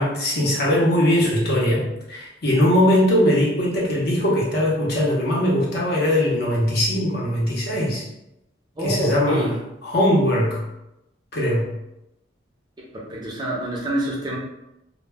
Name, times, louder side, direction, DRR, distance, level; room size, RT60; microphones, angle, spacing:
voice 1, 0.0-8.1 8.8-9.6 9.8-10.6 11.3-11.7, left 1 dB, 55° left, -4 dB, 0.7 m, -20 dB
voice 2, 8.8-9.6 13.1-14.4, right 1 dB, 20° right, -4 dB, 0.5 m, -26 dB
2.1 x 2.1 x 3.3 m, 0.88 s
head